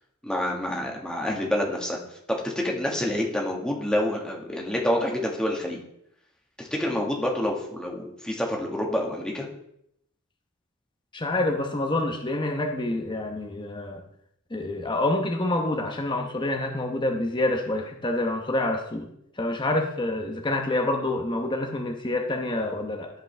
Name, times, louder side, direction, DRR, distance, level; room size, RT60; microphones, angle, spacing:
voice 1, 0.2-2.0 2.3-5.8 6.6-9.5, left 1 dB, 5° left, -1 dB, 1.7 m, -27 dB
voice 2, 11.1-14.0 14.5-19.1 19.4-23.1, left 2 dB, 20° left, 3 dB, 0.9 m, -27 dB
15.5 x 5.2 x 3.4 m, 0.75 s
head